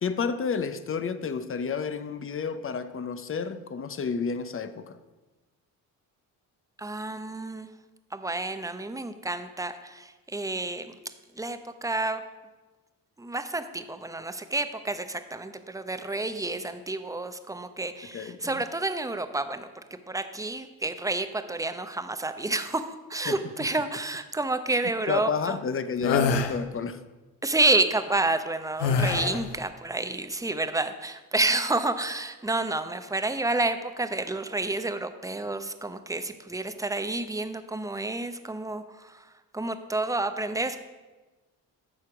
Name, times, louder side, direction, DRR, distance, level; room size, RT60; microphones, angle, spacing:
voice 1, 0.0-5.0 18.1-18.6 23.3-23.4 25.1-27.0, left 5 dB, 30° left, 0.7 m, -30 dB
voice 2, 6.8-7.7 8.1-11.0 11.4-12.2 13.2-25.6 27.4-39.3 39.5-40.8, right 2 dB, 10° right, 0.7 m, -29 dB
sound 1, 26.0-26.5 28.8-29.5, left 5 dB, 75° left, 0.9 m, -24 dB
12.5 x 4.4 x 4.9 m
supercardioid pair, 55°, 43 cm